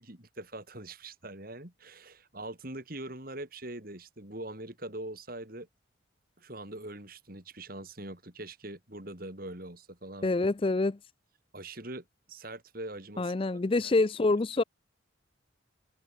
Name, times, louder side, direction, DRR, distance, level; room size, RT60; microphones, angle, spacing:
voice 1, 0.0-5.7 6.4-10.3 11.5-13.3 13.7-13.9, right 1 dB, 50° right, 3.7 m, -43 dB
voice 2, 10.2-11.0 13.2-14.6, left 2 dB, 30° left, 0.4 m, -26 dB
open air
head